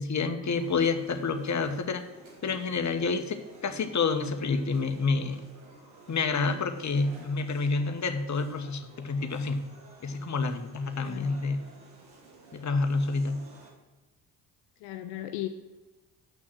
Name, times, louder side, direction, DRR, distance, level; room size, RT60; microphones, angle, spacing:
voice 1, 0.0-2.0 2.4-5.4 6.1-9.6 10.0-11.6 12.5-13.4, left 4 dB, 35° left, 7 dB, 1.3 m, -28 dB
sound 1, 0.6-13.7, right 3 dB, 75° right, 2.7 m, -52 dB
voice 2, 11.0-11.3 14.8-15.5, left 14 dB, 70° left, 8 dB, 0.7 m, -36 dB
7.8 x 6.1 x 7.6 m, 1.2 s
hypercardioid pair, 50°, 49 cm